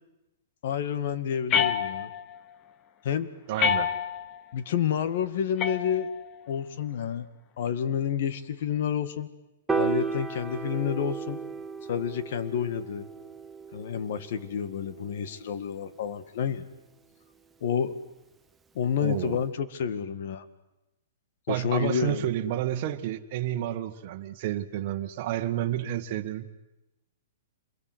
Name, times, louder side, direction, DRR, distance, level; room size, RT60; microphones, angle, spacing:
voice 1, 0.6-2.1 3.0-3.3 4.5-6.1 6.5-7.3 7.6-9.3 9.7-11.4 11.9-13.1 13.7-16.7 17.6-17.9 18.8-20.5 21.5-22.3, left 8 dB, 55° left, 12 dB, 1.8 m, -29 dB
sound 1, 1.5-2.4 3.6-4.4 5.6-6.4, left 8 dB, 25° left, 1.0 m, -28 dB
voice 2, 3.5-3.9 19.0-19.4 21.5-26.6, right 12 dB, 40° right, 6 dB, 1.7 m, -30 dB
Piano, 9.7-16.0, right 5 dB, 10° right, 0.9 m, -34 dB
27.0 x 22.0 x 8.0 m, 0.99 s
hypercardioid pair, 160°, 0 cm